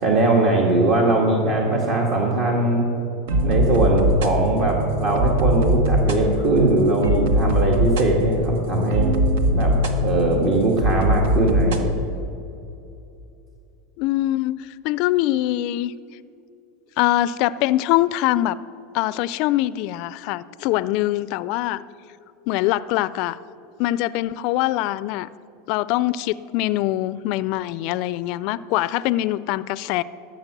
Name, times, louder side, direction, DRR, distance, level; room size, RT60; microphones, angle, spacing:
voice 1, 0.0-2.8 3.4-9.1 9.5-9.7 10.0-11.9, right 2 dB, 50° right, -1 dB, 1.8 m, -20 dB
sound 1, 3.3-11.8, equal, 80° right, 1.1 m, -22 dB
voice 2, 14.0-15.9 17.0-18.5 18.9-21.8 22.5-23.4 23.8-25.3 25.7-30.0, left 15 dB, 60° left, 17 dB, 0.3 m, -23 dB
13.5 x 6.5 x 6.7 m, 2.7 s
supercardioid pair, 120°, 0 cm